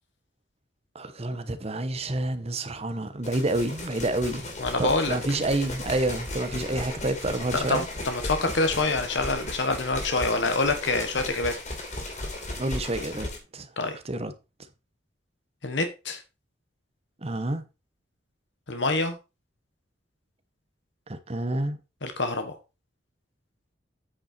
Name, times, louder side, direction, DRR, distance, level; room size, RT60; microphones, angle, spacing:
voice 1, 0.9-4.5 4.8-7.9 12.6-13.7 14.0-14.3 17.2-17.6 21.1-21.8, right 2 dB, 35° right, 1.0 m, -28 dB
sound 1, 3.2-13.4, left 2 dB, 40° left, 2.9 m, -36 dB
voice 2, 4.6-5.4 7.5-11.5 13.8-14.0 15.6-16.2 18.7-19.2 22.0-22.6, left 3 dB, 70° left, 1.3 m, -26 dB
8.7 x 5.5 x 4.4 m
head